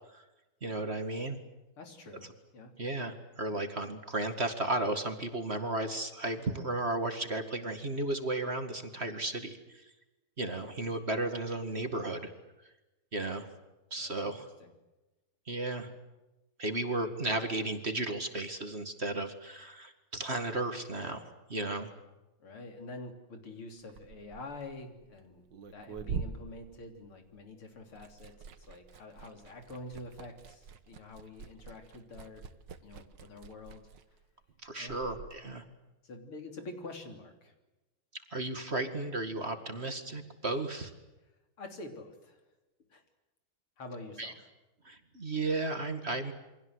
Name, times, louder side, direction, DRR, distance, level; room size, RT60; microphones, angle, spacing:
voice 1, 0.6-1.4 2.8-9.8 10.4-12.3 13.1-13.5 13.9-14.4 15.5-15.9 16.6-21.9 34.6-35.6 38.3-40.9 44.2-44.3 44.8-46.3, right 2 dB, 30° right, 7 dB, 2.2 m, -34 dB
voice 2, 1.8-2.8 14.0-14.1 14.6-14.7 22.4-25.4 25.7-32.5 32.8-33.9 34.8-35.0 36.0-37.5 41.6-42.4 42.9-43.0 43.8-44.5 45.3-45.4, left 2 dB, 90° left, 5 dB, 4.3 m, -47 dB
Liquid, 23.8-27.5 27.8-35.4, right 6 dB, 60° right, 2.0 m, -45 dB
28.5 x 24.0 x 8.0 m, 1.0 s
omnidirectional pair, 2.3 m